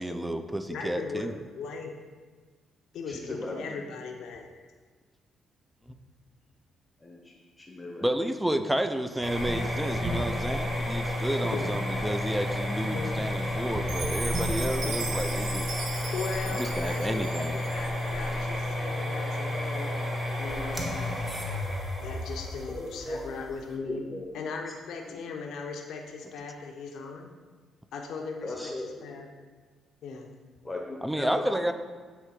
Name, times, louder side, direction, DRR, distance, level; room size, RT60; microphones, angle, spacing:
voice 1, 0.0-1.3 8.0-15.8 16.5-17.6 31.0-31.7, right 1 dB, 5° right, 9 dB, 0.4 m, -31 dB
voice 2, 0.7-2.0 2.9-4.5 11.5-11.8 12.9-13.2 14.8-15.0 16.1-19.9 20.4-21.2 22.0-24.0 24.3-27.3 27.9-29.3 30.0-30.3, left 4 dB, 75° left, 1 dB, 0.6 m, -38 dB
voice 3, 3.1-3.7 7.0-8.1 22.7-23.4 23.8-24.3 25.1-25.2 28.4-29.0 30.6-31.7, left 2 dB, 10° left, -1 dB, 0.9 m, -38 dB
sound 1, 9.2-23.7, left 1 dB, 25° right, 1.4 m, -31 dB
Chime, 13.9-18.1, right 4 dB, 70° right, 0.8 m, -38 dB
8.0 x 3.3 x 4.7 m, 1.5 s
cardioid pair, 90°, 0 cm